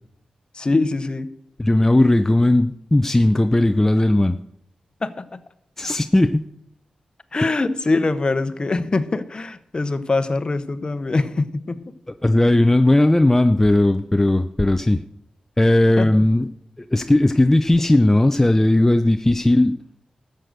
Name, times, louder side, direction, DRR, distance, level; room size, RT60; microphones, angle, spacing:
voice 1, 0.5-1.3 5.0-5.4 7.3-11.9 16.0-16.3, left 3 dB, 40° left, 12 dB, 1.0 m, -23 dB
voice 2, 1.6-4.4 5.8-6.4 12.2-15.0 15.6-16.5 16.9-19.8, left 1 dB, 15° left, 9 dB, 0.5 m, -17 dB
13.0 x 7.7 x 6.7 m, 0.76 s
cardioid pair, 70°, 2 cm